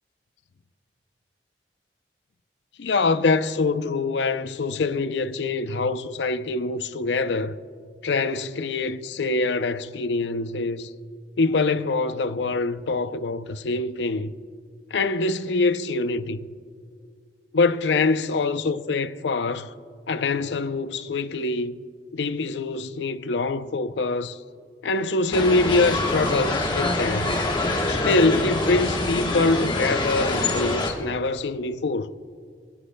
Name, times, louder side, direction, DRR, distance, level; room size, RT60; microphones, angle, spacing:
voice 1, 2.8-7.6 8.0-10.9 11.4-14.3 14.9-16.5 17.5-19.7 20.1-21.8 22.1-24.4 24.8-27.3 27.9-32.1, left 3 dB, 75° left, 0.5 m, -24 dB
sound 1, 25.3-30.9, left 2 dB, 25° left, 1.3 m, -25 dB
27.0 x 10.0 x 2.2 m
head